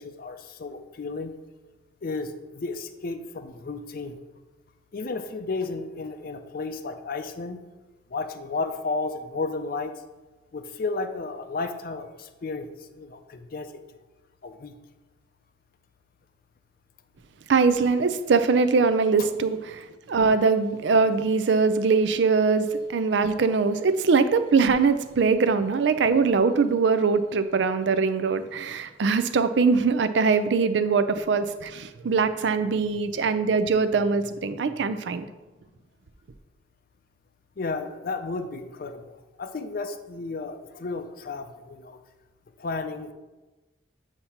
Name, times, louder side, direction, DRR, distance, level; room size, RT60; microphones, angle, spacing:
voice 1, 0.0-1.3 2.0-4.2 4.9-7.6 8.1-9.9 10.5-13.8 14.4-14.7 19.2-19.3 37.6-39.1 39.4-42.0 42.6-43.1, left 3 dB, 50° left, 8 dB, 0.4 m, -33 dB
voice 2, 17.5-35.3, right 4 dB, 70° right, 12 dB, 0.4 m, -22 dB
8.1 x 2.8 x 5.7 m, 1.1 s
head